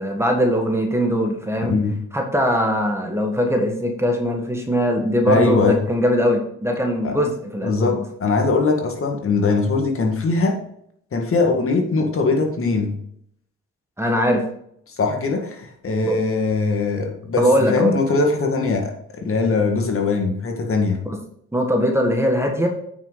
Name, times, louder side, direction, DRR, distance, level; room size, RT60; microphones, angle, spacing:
voice 1, 0.0-1.7 2.1-7.9 14.0-14.4 16.0-16.2 17.4-18.0 21.1-21.2 21.5-22.7, equal, 10° right, 3 dB, 1.6 m, -21 dB
voice 2, 5.3-5.8 7.0-7.1 7.6-10.6 11.1-13.0 14.9-21.0, left 3 dB, 45° left, 2 dB, 1.9 m, -21 dB
8.6 x 6.4 x 4.0 m, 0.70 s
cardioid pair, 90°, 30 cm